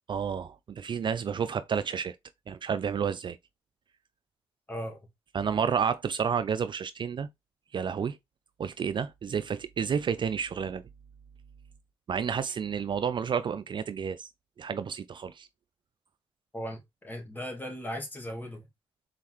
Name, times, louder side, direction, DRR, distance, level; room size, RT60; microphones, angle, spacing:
voice 1, 0.1-2.2 2.5-3.4 5.3-7.3 7.7-8.2 8.6-10.8 12.1-14.3 14.6-15.5, right 7 dB, 50° right, 0.4 m, -30 dB
voice 2, 4.7-5.0 16.5-18.6, equal, 20° left, 2.0 m, -37 dB
4.2 x 3.8 x 3.0 m
cardioid pair, 60°, 11 cm